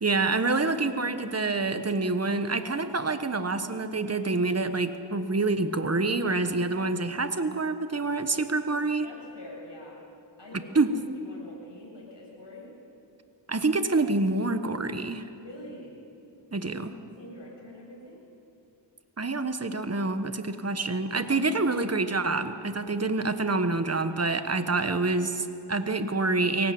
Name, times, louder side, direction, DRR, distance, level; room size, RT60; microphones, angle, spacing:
voice 1, 0.0-9.1 10.5-10.9 13.5-15.2 16.5-16.9 19.2-26.7, right 3 dB, 35° right, 9 dB, 1.3 m, -27 dB
voice 2, 9.0-10.1 10.4-12.7 15.4-16.0 16.6-16.8 17.2-18.2, left 1 dB, 65° left, -3 dB, 7.8 m, -45 dB
22.5 x 19.0 x 7.9 m, 2.6 s
wide cardioid pair, 40°, 45 cm